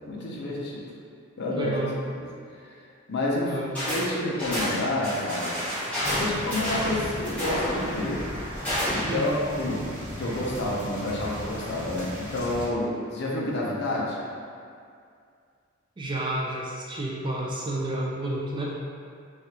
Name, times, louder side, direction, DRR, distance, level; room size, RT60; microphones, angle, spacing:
voice 1, 0.1-0.8 1.4-1.7 2.1-2.3 2.6-2.8 3.1-3.5 3.9-5.6 6.1-8.2 8.9-9.9 10.2-14.2, left 1 dB, 50° left, -4 dB, 0.5 m, -29 dB
voice 2, 1.5-2.0 3.4-3.7 9.1-9.4 16.0-18.6, right 1 dB, 20° right, -4 dB, 0.3 m, -30 dB
sound 1, 3.7-4.1 4.4-9.2, equal, 5° left, 1.0 m, -29 dB
sound 2, 6.0-12.7, equal, 85° right, 1.3 m, -37 dB
3.3 x 2.4 x 2.8 m, 2.3 s
head